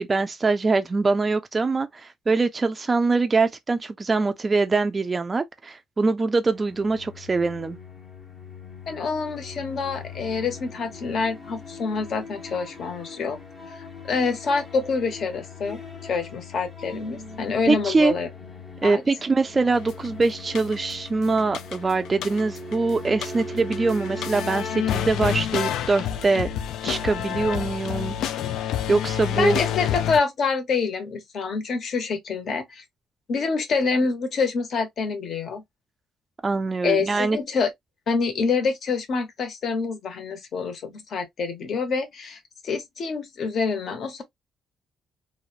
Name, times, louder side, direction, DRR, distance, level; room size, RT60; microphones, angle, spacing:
voice 1, 0.0-7.8 17.7-18.1 18.8-26.5 26.8-28.2 28.9-29.6 36.4-37.4, right 3 dB, 25° right, 0.3 m, -23 dB
sound 1, 6.5-25.1, left 2 dB, 25° left, 0.7 m, -40 dB
voice 2, 8.9-13.4 13.7-18.3 18.8-19.0 29.3-32.8 33.3-35.6 36.8-37.7 38.1-44.2, left 4 dB, 50° left, 0.8 m, -26 dB
sound 2, 19.9-20.1 20.5-21.1 21.4-22.7 23.0-30.2, left 10 dB, 75° left, 0.3 m, -28 dB
2.9 x 2.1 x 2.3 m
cardioid pair, 135°, 0 cm